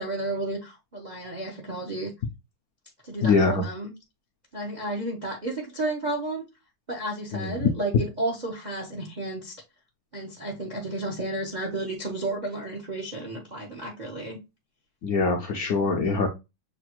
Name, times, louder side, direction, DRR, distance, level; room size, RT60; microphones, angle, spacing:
voice 1, 0.0-2.1 3.0-3.9 4.5-6.4 6.9-9.5 10.1-14.4, right 2 dB, 50° right, 0.5 m, -32 dB
voice 2, 3.2-3.6 7.3-7.6 15.0-16.3, left 4 dB, 70° left, 0.8 m, -23 dB
6.7 x 2.4 x 2.9 m
omnidirectional pair, 2.2 m